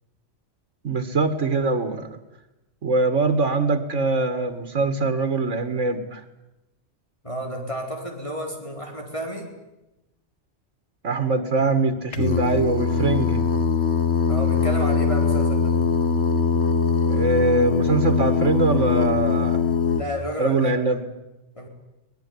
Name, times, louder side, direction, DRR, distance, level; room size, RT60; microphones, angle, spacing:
voice 1, 0.8-2.2 2.8-6.2 11.0-13.4 17.1-19.6 20.4-21.0, right 3 dB, 85° right, 8 dB, 2.2 m, -23 dB
voice 2, 7.2-9.5 14.3-15.8 20.0-20.7 21.6-21.7, equal, 25° left, 1 dB, 4.5 m, -31 dB
Singing, 12.1-20.0, left 5 dB, 70° left, 1.6 m, -21 dB
23.5 x 20.0 x 9.8 m, 0.95 s
omnidirectional pair, 1.2 m